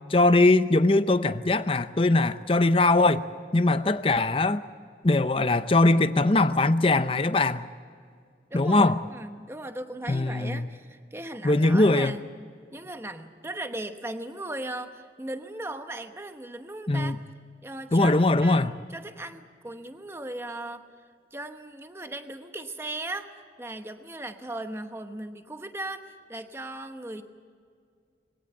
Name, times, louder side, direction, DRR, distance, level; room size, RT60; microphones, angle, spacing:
voice 1, 0.1-3.2 3.5-4.6 5.0-7.7 8.5-9.0 10.1-10.6 11.4-12.2 16.9-17.2 17.9-18.7, left 2 dB, 30° left, 0.7 m, -21 dB
voice 2, 8.5-12.2 12.7-17.2 17.6-20.8 21.3-23.3 23.6-27.2, right 1 dB, 15° right, 1.0 m, -37 dB
21.5 x 17.5 x 8.9 m
head